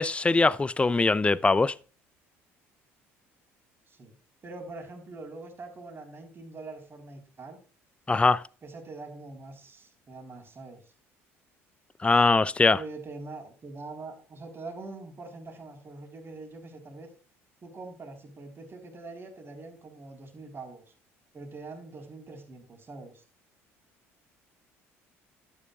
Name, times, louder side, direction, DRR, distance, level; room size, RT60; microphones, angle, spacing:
voice 1, 0.0-1.7 8.1-8.4 12.0-12.8, left 3 dB, 15° left, 0.5 m, -22 dB
voice 2, 4.4-7.6 8.6-10.8 12.7-17.1 17.6-20.8 21.3-23.2, right 3 dB, 35° right, 4.3 m, -43 dB
12.5 x 9.7 x 2.5 m
hypercardioid pair, 60°, 7 cm